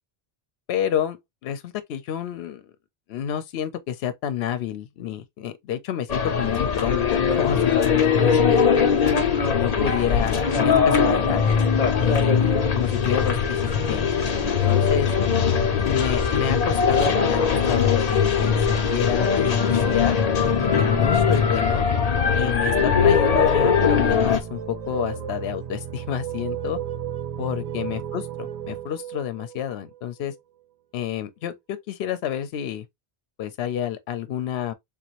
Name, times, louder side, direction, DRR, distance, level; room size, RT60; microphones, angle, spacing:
voice 1, 0.7-2.6 3.1-8.7 9.5-11.4 12.0-13.6 13.9-14.1 14.4-15.1 15.9-21.9 22.4-26.8 27.4-28.2 28.7-30.3 30.9-32.9 33.4-34.7, left 10 dB, 75° left, 0.9 m, -29 dB
sound 1, 6.1-24.4, left 6 dB, 45° left, 0.7 m, -20 dB
sound 2, 24.2-30.4, right 9 dB, 50° right, 0.5 m, -33 dB
3.6 x 2.5 x 2.9 m
omnidirectional pair, 1.1 m